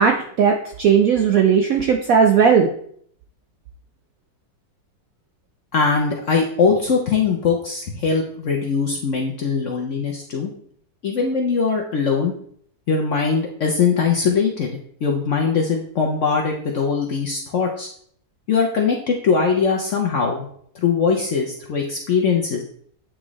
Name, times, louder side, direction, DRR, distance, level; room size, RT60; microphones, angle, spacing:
voice 1, 0.0-2.7, right 6 dB, 75° right, 4 dB, 0.8 m, -16 dB
voice 2, 5.7-10.5 11.0-12.3 12.9-17.9 18.5-20.5 20.7-22.6, left 5 dB, 60° left, 0 dB, 0.8 m, -21 dB
8.6 x 3.7 x 3.0 m, 0.62 s
omnidirectional pair, 2.0 m